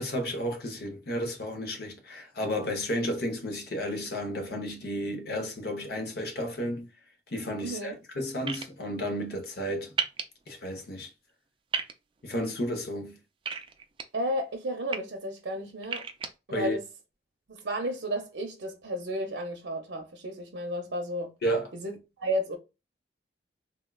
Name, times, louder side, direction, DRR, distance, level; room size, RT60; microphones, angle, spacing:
voice 1, 0.0-6.9 7.3-9.9 10.5-11.1 12.2-13.2 16.5-16.8 21.4-21.7, equal, 60° left, 0.8 m, -32 dB
voice 2, 7.6-8.0 14.1-16.1 16.5-16.8 17.5-21.3 21.7-21.9 22.2-22.6, equal, 70° right, 0.7 m, -32 dB
sound 1, 8.5-8.6 10.0-10.2 11.7-11.9 13.5-14.0 14.7-15.0 15.8-16.3, right 6 dB, 30° right, 0.4 m, -31 dB
3.5 x 2.3 x 2.2 m
head